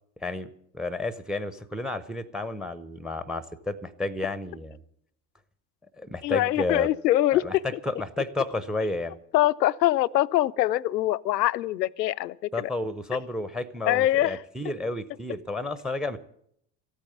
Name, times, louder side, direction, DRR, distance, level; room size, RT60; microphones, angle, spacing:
voice 1, 0.2-4.8 6.0-6.9 7.3-9.2 12.5-16.2, left 2 dB, ahead, 0.6 m, -31 dB
voice 2, 6.2-7.8 9.3-12.7 13.9-14.4, left 14 dB, 80° left, 0.5 m, -24 dB
14.0 x 9.0 x 9.2 m
figure-of-eight pair, 70°, 49 cm